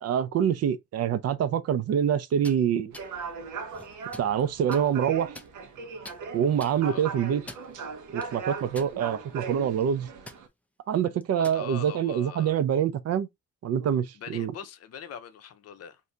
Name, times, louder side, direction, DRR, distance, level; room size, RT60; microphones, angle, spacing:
voice 1, 0.0-2.9 4.2-5.3 6.3-7.4 8.1-10.1 10.9-13.3 13.6-14.5, right 8 dB, 60° right, 0.5 m, -26 dB
sound 1, 2.3-2.6 2.9-3.1 3.7-4.3 4.7-4.8 5.3-5.8 6.0-6.2 6.6-6.8 7.3-7.7 8.2-8.3 8.7-9.3 9.6-9.8 10.3-10.4 11.2-11.6, left 1 dB, 5° left, 0.4 m, -45 dB
sound 2, 2.9-10.5, right 5 dB, 85° right, 0.8 m, -38 dB
voice 2, 11.4-12.6 14.1-16.0, left 7 dB, 55° left, 0.6 m, -42 dB
2.7 x 2.6 x 3.2 m
cardioid pair, 130°, 29 cm